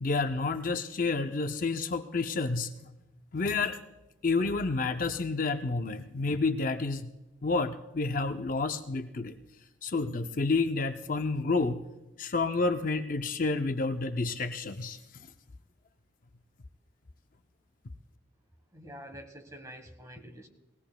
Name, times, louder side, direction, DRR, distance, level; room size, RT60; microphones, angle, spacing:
voice 1, 0.0-2.7 3.3-3.8 4.2-7.1 7.4-9.3 9.8-11.8 12.2-15.3, left 3 dB, 45° left, 8 dB, 0.5 m, -29 dB
voice 2, 18.7-20.5, equal, 15° right, 4 dB, 1.3 m, -47 dB
20.5 x 17.0 x 2.2 m, 1.0 s
head